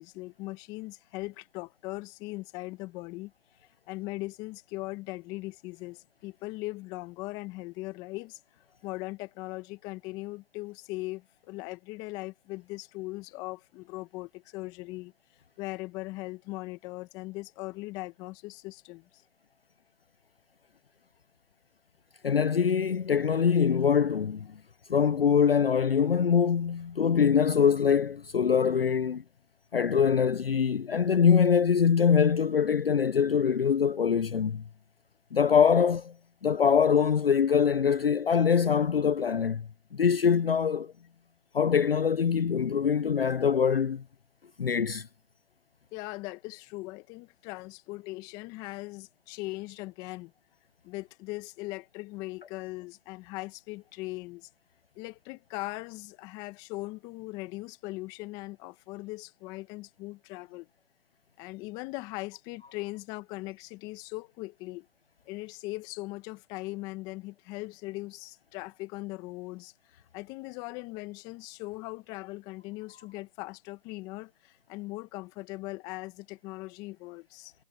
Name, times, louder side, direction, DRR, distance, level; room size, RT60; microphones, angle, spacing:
voice 1, 0.0-3.3 3.9-8.4 8.8-15.1 15.6-19.1 45.9-50.3 50.8-54.5 54.9-60.7 61.4-64.9 65.3-77.5, left 21 dB, 10° left, 1.4 m, -39 dB
voice 2, 22.2-24.6 24.9-29.2 29.7-34.6 35.3-36.1 36.4-40.9 41.5-44.0 44.6-45.1, left 7 dB, 50° left, 0.6 m, -24 dB
figure-of-eight pair, 155°, 37 cm